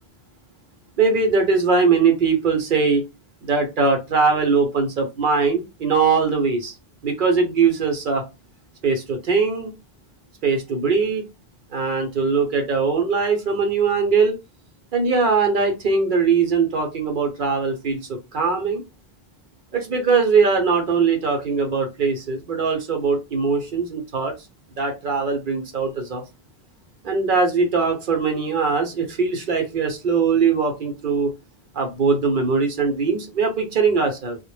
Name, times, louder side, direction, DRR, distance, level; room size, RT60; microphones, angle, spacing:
voice 1, 1.0-3.0 3.4-6.7 7.0-8.2 8.8-9.7 10.4-11.2 11.7-14.4 14.9-18.8 19.7-24.3 24.8-26.2 27.0-31.3 31.7-34.4, right 5 dB, 55° right, 0.7 m, -21 dB
2.1 x 2.0 x 3.1 m
omnidirectional pair, 1.1 m